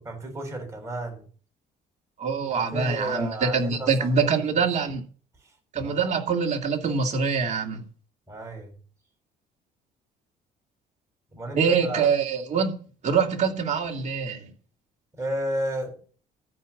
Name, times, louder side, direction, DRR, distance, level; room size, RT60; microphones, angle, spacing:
voice 1, 0.0-1.2 2.5-4.3 5.4-5.5 5.8-6.1 8.3-8.7 11.3-12.1 15.2-15.9, right 1 dB, 15° right, 6.3 m, -33 dB
voice 2, 2.2-5.0 5.7-7.9 11.5-12.7 13.0-14.5, right 5 dB, 45° right, 2.6 m, -24 dB
13.5 x 5.3 x 8.4 m
cardioid pair, 110°, 17 cm